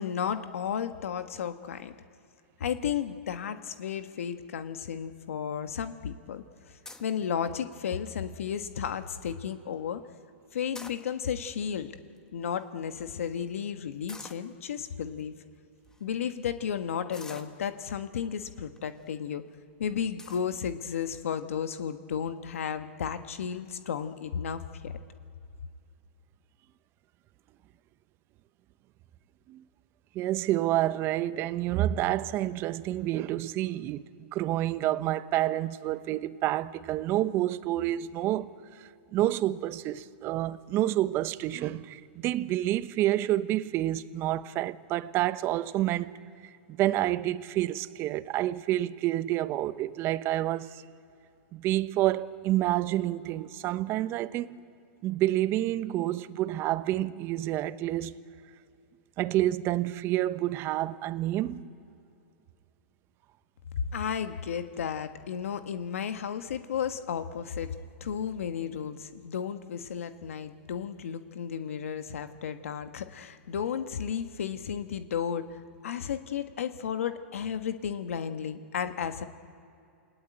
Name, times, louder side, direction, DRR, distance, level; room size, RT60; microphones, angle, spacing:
voice 1, 0.0-1.9 2.6-6.4 7.0-10.0 10.5-11.9 12.3-15.3 16.0-19.4 19.8-24.9 63.9-79.2, left 8 dB, 80° left, 1.4 m, -33 dB
sound 1, 6.8-7.2 7.8-8.1 8.6-8.7 8.9-9.2 10.5-11.4 12.2-12.3 12.5-12.6 14.1-14.5 15.2-15.3 15.8-16.0 17.1-18.0 18.8-19.1 19.5-19.6 20.2-20.5, left 2 dB, 10° left, 1.4 m, -47 dB
voice 2, 30.1-34.0 34.3-46.1 46.4-50.8 51.5-54.6 55.0-58.1 59.2-61.7, right 14 dB, 35° right, 0.9 m, -29 dB
29.0 x 18.5 x 9.1 m
hypercardioid pair, 135°, 7 cm